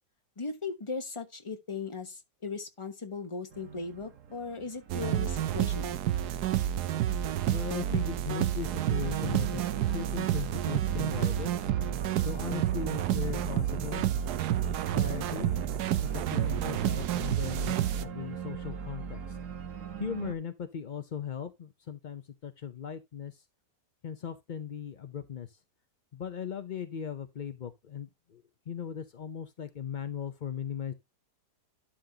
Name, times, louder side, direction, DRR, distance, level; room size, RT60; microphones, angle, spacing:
voice 1, 0.4-6.0, left 4 dB, 20° left, 1.1 m, -38 dB
Organ, 3.5-20.3, right 8 dB, 55° right, 1.3 m, -42 dB
sound 1, 4.9-18.0, right 11 dB, 75° right, 1.2 m, -30 dB
voice 2, 7.4-11.5 12.2-14.1 14.9-15.5 16.1-19.4 19.9-23.4 24.0-25.6 26.1-30.9, left 8 dB, 60° left, 0.5 m, -38 dB
11.5 x 6.2 x 2.8 m
omnidirectional pair, 1.8 m